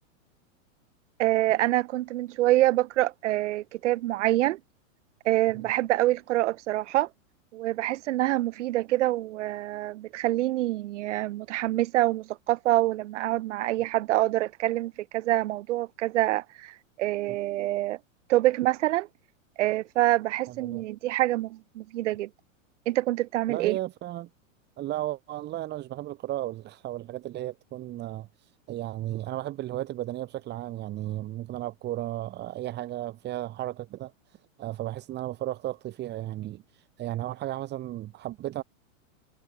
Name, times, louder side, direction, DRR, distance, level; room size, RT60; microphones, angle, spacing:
voice 1, 1.2-4.6 5.2-7.1 7.5-18.0 18.3-19.1 19.6-22.3 22.9-23.8, right 16 dB, 60° right, 1.3 m, -26 dB
voice 2, 20.5-20.8 23.5-24.3 24.8-34.1 34.6-38.6, right 14 dB, 25° right, 2.5 m, -34 dB
hypercardioid pair, 150°, 41 cm